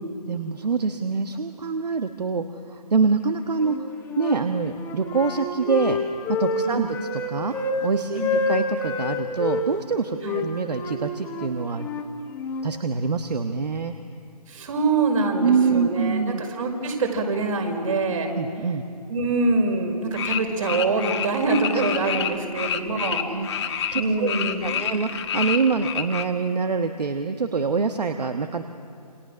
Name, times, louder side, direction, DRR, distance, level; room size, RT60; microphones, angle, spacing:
voice 1, 0.3-3.9 4.2-6.0 6.3-7.5 7.8-11.9 12.6-13.9 15.4-16.4 18.3-18.8 22.6-22.7 23.3-24.3 24.6-28.6, right 5 dB, 75° right, 7 dB, 1.3 m, -25 dB
Wind instrument woodwind instrument, 3.6-4.4 4.7-7.8 8.2-9.6 10.2-12.7, left 3 dB, 10° left, 1.7 m, -28 dB
voice 2, 14.5-18.3 19.1-23.2 24.0-24.7, right 3 dB, 55° right, 2 dB, 5.2 m, -24 dB
sound 1, 20.1-24.0 24.3-26.2, left 8 dB, 40° left, 1.6 m, -28 dB
28.0 x 26.0 x 6.3 m, 2.6 s
figure-of-eight pair, 150°, 21 cm